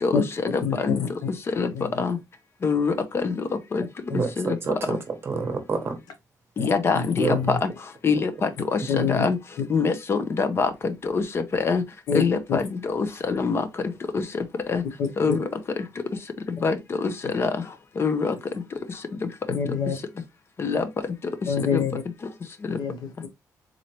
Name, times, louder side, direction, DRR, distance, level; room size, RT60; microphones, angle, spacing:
voice 1, 0.0-1.0 1.6-1.7 2.0-2.2 2.6-3.9 4.4-4.6 4.9-5.0 6.6-7.7 8.0-9.4 9.7-11.8 12.1-13.6 14.1-14.8 15.2-15.5 16.6-17.5 18.0-18.4 20.6-20.9 21.7-21.8 22.6-22.8, left 5 dB, 40° left, 0.6 m, -25 dB
voice 2, 0.6-1.1 1.7-2.0 6.6-6.7 6.9-7.6 8.9-9.2 12.1-12.2 12.5-12.6 19.5-20.0 21.5-22.0 22.7-23.3, left 6 dB, 85° left, 0.9 m, -26 dB
voice 3, 4.1-6.0 7.2-7.4, right 4 dB, 40° right, 0.9 m, -28 dB
3.9 x 3.1 x 2.8 m
cardioid pair, 135°, 7 cm